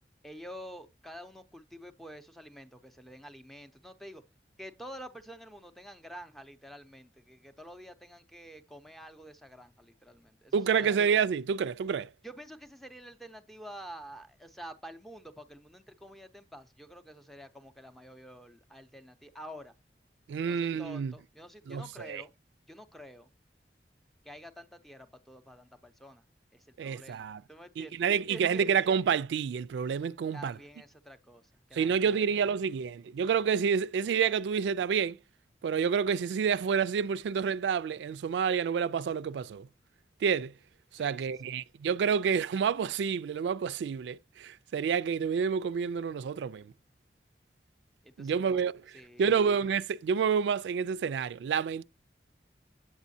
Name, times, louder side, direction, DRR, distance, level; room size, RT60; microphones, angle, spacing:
voice 1, 0.2-4.2 4.6-11.0 12.2-19.7 20.4-22.3 22.7-23.3 24.2-26.2 26.5-28.9 30.3-31.4 31.7-32.3 40.9-41.6 48.0-48.6 48.9-49.6, equal, ahead, 0.5 m, -48 dB
voice 2, 10.5-12.1 20.3-21.1 21.7-22.2 26.8-27.4 27.8-30.5 31.7-35.2 35.6-39.7 40.2-40.5 41.0-46.7 48.2-48.7 49.2-51.8, right 6 dB, 85° right, 0.3 m, -28 dB
8.2 x 7.2 x 2.7 m
head